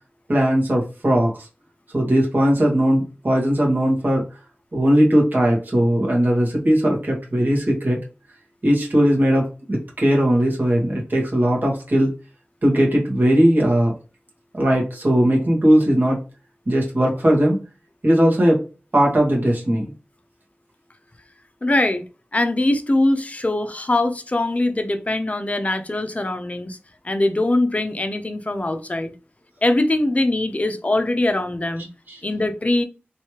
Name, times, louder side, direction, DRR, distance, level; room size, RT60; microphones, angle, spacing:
voice 1, 0.3-1.5 1.9-4.2 4.7-8.0 8.6-12.1 12.6-13.9 14.5-16.2 16.7-17.6 18.0-18.6 18.9-19.9 32.1-32.2, equal, 50° right, 1.6 m, -18 dB
voice 2, 21.6-22.0 22.3-26.8 27.0-29.1 29.6-31.9 32.2-32.8, left 2 dB, 35° left, 0.6 m, -22 dB
3.2 x 3.1 x 3.0 m
wide cardioid pair, 60°, 4 cm